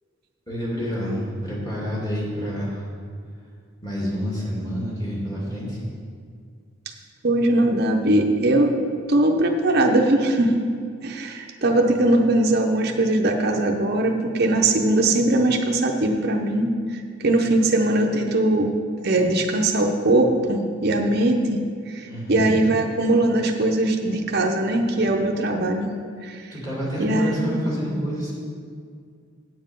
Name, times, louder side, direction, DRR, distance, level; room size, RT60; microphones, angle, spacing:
voice 1, 0.5-2.9 3.8-5.8 22.0-22.5 26.5-28.3, equal, 20° left, -5 dB, 2.5 m, -28 dB
voice 2, 7.2-8.7 9.1-10.5 11.0-16.7 17.2-18.7 19.0-21.6 21.9-25.9 26.2-26.4 27.0-27.6, right 1 dB, 50° right, 2 dB, 0.7 m, -20 dB
8.2 x 7.5 x 5.3 m, 2.2 s
head